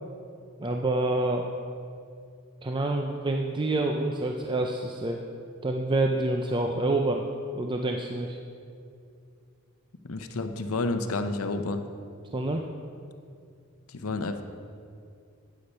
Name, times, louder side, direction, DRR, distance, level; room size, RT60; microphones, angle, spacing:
voice 1, 0.6-1.5 2.6-5.2 5.6-7.2 7.5-8.4 12.3-12.6, right 2 dB, 20° right, 2 dB, 0.5 m, -27 dB
voice 2, 10.0-11.8 13.9-14.4, left 2 dB, 85° left, 8 dB, 0.7 m, -30 dB
9.9 x 8.5 x 5.5 m, 2.4 s
head